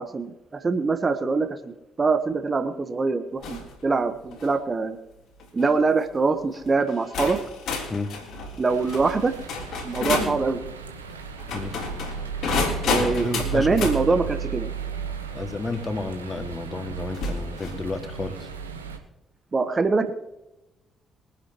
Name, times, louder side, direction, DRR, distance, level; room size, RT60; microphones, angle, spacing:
voice 1, 0.0-1.7 2.0-5.0 5.5-7.4 8.6-9.3 9.8-10.6 12.9-14.7 19.5-20.1, right 4 dB, 30° right, 9 dB, 1.2 m, -24 dB
sound 1, 3.4-3.7 4.2-4.6 5.4-5.7 6.5-6.6 7.1-10.4 11.4-14.0 15.7-15.8 17.1-17.8, left 3 dB, 60° left, 3.7 m, -30 dB
sound 2, 8.7-19.0, right 6 dB, 80° right, 1.1 m, -35 dB
voice 2, 12.9-13.7 15.3-18.5, left 3 dB, 30° left, 7 dB, 2.1 m, -32 dB
23.5 x 10.5 x 3.1 m, 0.95 s
figure-of-eight pair, 45°, 0 cm